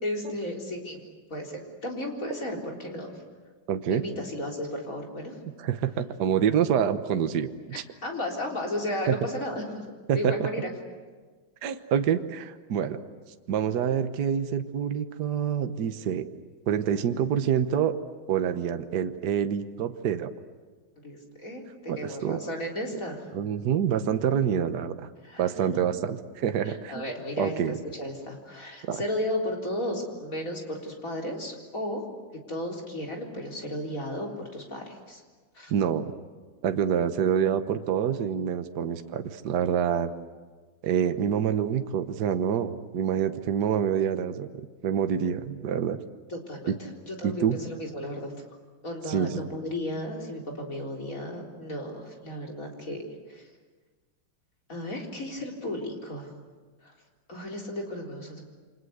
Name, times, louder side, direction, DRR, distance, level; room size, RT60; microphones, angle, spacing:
voice 1, 0.0-1.0 1.3-3.2 3.9-5.4 8.0-9.8 10.1-10.7 21.0-23.2 25.2-25.8 26.6-32.0 32.5-35.2 35.5-35.7 46.3-48.3 48.8-53.0 53.3-53.4 54.7-56.3 56.8-56.9 57.3-58.4, left 1 dB, 40° left, 0 dB, 4.3 m, -34 dB
voice 2, 3.7-4.0 5.6-7.8 9.1-9.2 10.1-10.5 11.6-13.0 13.5-16.2 16.7-17.9 18.3-20.3 21.9-22.4 23.3-25.0 25.4-26.9 27.4-27.8 28.8-29.0 35.7-36.1 36.6-40.1 40.8-46.0 47.2-47.6 49.1-49.4, right 8 dB, 55° right, 8 dB, 1.5 m, -26 dB
29.0 x 25.0 x 8.0 m, 1.4 s
omnidirectional pair, 2.3 m